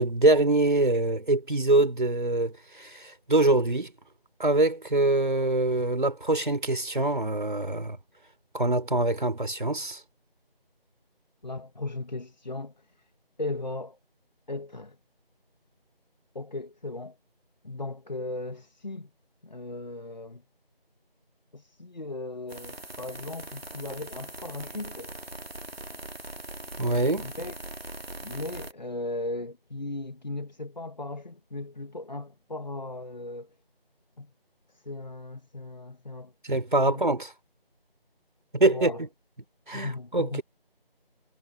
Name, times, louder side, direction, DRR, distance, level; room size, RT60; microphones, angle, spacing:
voice 1, 0.0-3.9 4.4-8.0 8.5-10.0 26.8-27.3 36.4-37.3 38.5-38.9 39.7-40.4, right 2 dB, 55° right, 3.8 m, -24 dB
voice 2, 11.4-13.1 13.4-14.0 14.5-15.0 16.3-17.2 17.6-19.1 19.4-20.4 21.5-25.2 27.2-27.5 28.2-33.5 34.2-34.3 34.7-36.3 36.8-37.0 38.7-39.0 39.7-40.4, left 2 dB, 45° left, 2.0 m, -37 dB
sound 1, 22.5-28.7, right 2 dB, 80° right, 2.8 m, -41 dB
figure-of-eight pair, 175°, 30 cm